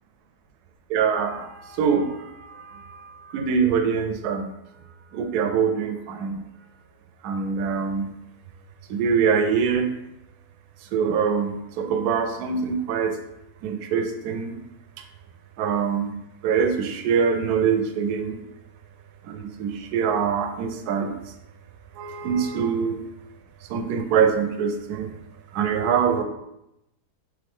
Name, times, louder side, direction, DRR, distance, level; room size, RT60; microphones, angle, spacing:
voice 1, 0.9-1.4 1.8-2.1 3.3-4.4 5.1-5.9 6.2-6.4 7.2-8.1 8.9-9.9 10.9-11.5 11.8-13.1 13.6-14.5 15.6-16.1 16.4-18.3 19.4-21.1 22.0-22.9 23.7-25.1 25.6-26.2, right 6 dB, 80° right, 5 dB, 1.1 m, -23 dB
3.8 x 3.6 x 3.5 m, 0.87 s
omnidirectional pair, 1.7 m